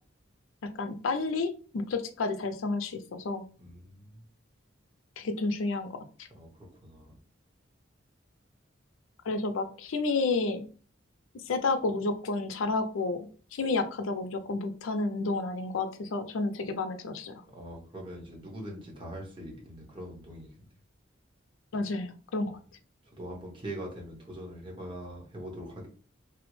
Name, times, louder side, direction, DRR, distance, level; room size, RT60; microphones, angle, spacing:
voice 1, 0.8-3.4 5.2-5.9 6.2-6.3 9.2-10.6 11.3-13.2 13.5-17.4 21.7-22.6, left 3 dB, 85° left, 8 dB, 0.5 m, -30 dB
voice 2, 3.6-4.2 6.3-7.2 17.5-20.5 22.4-22.5 23.2-25.9, right 1 dB, 25° right, -1 dB, 1.0 m, -42 dB
3.4 x 2.0 x 3.0 m, 0.40 s
head